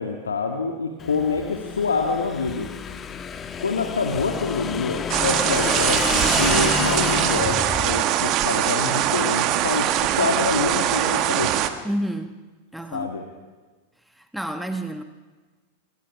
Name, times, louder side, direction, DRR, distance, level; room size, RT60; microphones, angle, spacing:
voice 1, 0.0-2.7 3.6-11.6 12.9-13.2, left 4 dB, 70° left, 3 dB, 1.8 m, -26 dB
Motorcycle / Engine, 1.0-8.0, left 6 dB, 20° left, 1.3 m, -29 dB
sound 1, 5.1-11.7, right 12 dB, 40° right, 1.3 m, -22 dB
voice 2, 11.8-12.4 12.7-13.1 14.1-15.0, right 1 dB, ahead, 7 dB, 1.2 m, -29 dB
26.5 x 20.5 x 6.1 m, 1.3 s
figure-of-eight pair, 90°, 0 cm